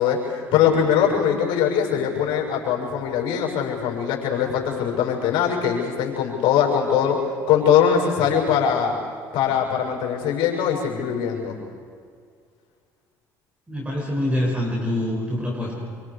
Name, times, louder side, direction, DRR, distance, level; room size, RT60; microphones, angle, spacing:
voice 1, 0.0-7.2 7.5-8.9 9.3-11.6, left 8 dB, 70° left, 0 dB, 6.5 m, -21 dB
voice 2, 13.7-15.8, left 1 dB, 15° right, -3 dB, 7.1 m, -25 dB
26.5 x 25.0 x 5.0 m, 2.1 s
supercardioid pair, 75°, 8 cm